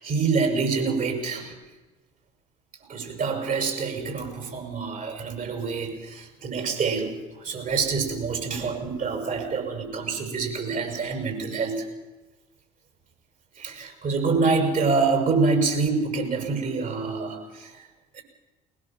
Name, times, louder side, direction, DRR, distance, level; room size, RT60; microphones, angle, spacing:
voice 1, 0.0-1.5 2.9-7.1 7.4-11.9 13.6-17.7 18.1-18.2, right 4 dB, 45° right, 4 dB, 6.4 m, -26 dB
21.0 x 20.0 x 7.5 m, 1.2 s
figure-of-eight pair, 60°, 20 cm